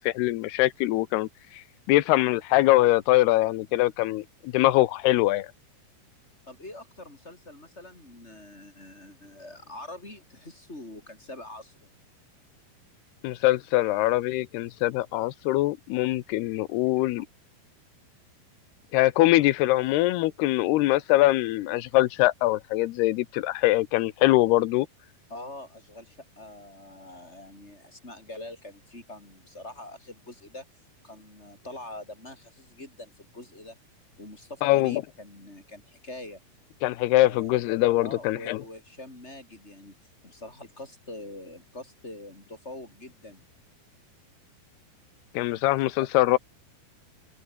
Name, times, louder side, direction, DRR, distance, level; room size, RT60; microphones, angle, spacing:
voice 1, 0.0-5.5 13.2-17.3 18.9-24.9 34.6-35.0 36.8-38.6 45.3-46.4, left 17 dB, 90° left, 2.9 m, -23 dB
voice 2, 6.5-11.9 17.0-17.1 25.3-30.6 31.0-33.8 34.2-36.4 37.2-37.7 38.0-39.9 40.2-43.4 46.0-46.1, left 2 dB, 15° left, 6.8 m, -44 dB
open air
omnidirectional pair, 4.5 m